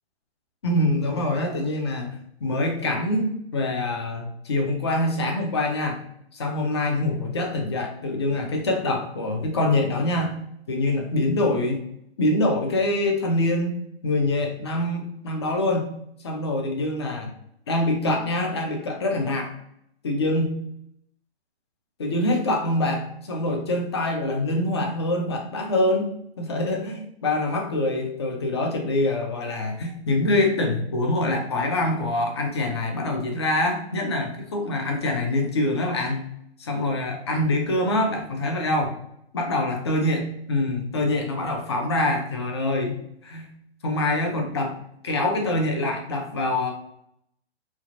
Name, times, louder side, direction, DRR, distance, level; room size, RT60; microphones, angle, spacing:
voice 1, 0.6-6.0 6.3-10.3 10.7-11.8 12.2-13.7 14.0-15.9 16.2-17.3 17.7-19.5 20.0-20.5 22.0-36.2 36.6-39.0 39.3-43.0 43.2-43.5 43.8-44.8 45.0-46.7, left 1 dB, 25° left, 3 dB, 0.3 m, -25 dB
3.2 x 2.3 x 2.5 m, 0.74 s
hypercardioid pair, 140°, 33 cm